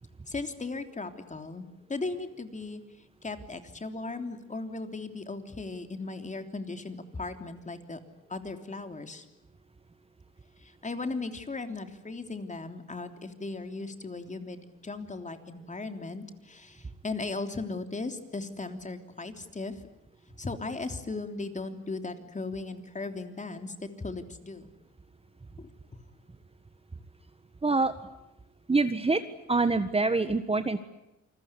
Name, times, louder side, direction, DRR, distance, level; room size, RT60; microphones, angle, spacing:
voice 1, 0.3-2.8 3.2-8.0 8.3-9.2 10.6-19.8 20.3-24.7 25.6-25.7, left 3 dB, 25° left, 7 dB, 3.3 m, -37 dB
voice 2, 27.6-27.9 28.7-29.2 29.5-30.8, right 3 dB, 20° right, 10 dB, 1.5 m, -25 dB
28.5 x 21.0 x 9.8 m, 0.95 s
cardioid pair, 90°, 30 cm